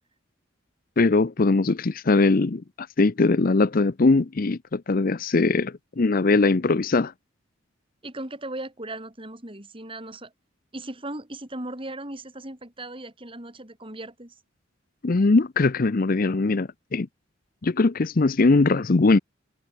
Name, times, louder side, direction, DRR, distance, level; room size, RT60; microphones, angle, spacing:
voice 1, 1.0-7.1 15.0-17.1 17.6-19.2, left 3 dB, 45° left, 0.6 m, -21 dB
voice 2, 8.0-10.3 10.7-14.4, right 1 dB, 25° right, 4.1 m, -37 dB
head